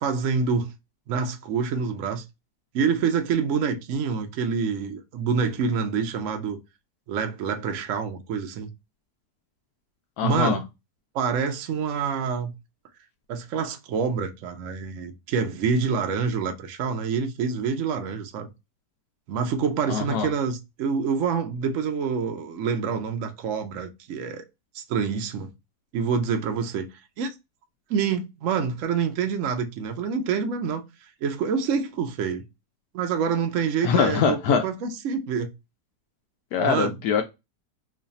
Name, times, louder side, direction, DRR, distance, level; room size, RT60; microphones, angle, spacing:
voice 1, 0.0-0.7 1.1-2.2 2.7-6.6 7.1-8.7 10.2-10.6 11.1-12.5 13.3-18.5 19.3-24.4 24.7-25.5 25.9-26.9 27.2-27.3 27.9-30.8 31.2-32.4 32.9-35.5 36.6-37.0, right 6 dB, 60° right, 0.9 m, -26 dB
voice 2, 10.2-10.6 19.9-20.3 33.8-34.6 36.5-37.2, left 6 dB, 75° left, 1.0 m, -23 dB
3.2 x 2.3 x 3.9 m
omnidirectional pair, 1.8 m